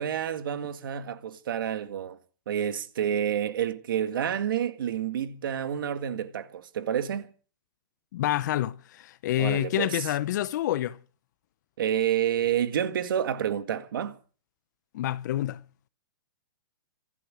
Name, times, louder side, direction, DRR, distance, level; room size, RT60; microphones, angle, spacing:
voice 1, 0.0-2.2 2.5-7.3 9.4-10.1 11.8-14.2, right 9 dB, 70° right, 1.8 m, -29 dB
voice 2, 8.1-11.0 14.9-15.6, left 13 dB, 55° left, 0.8 m, -28 dB
26.5 x 8.8 x 6.2 m
hypercardioid pair, 140°, 12 cm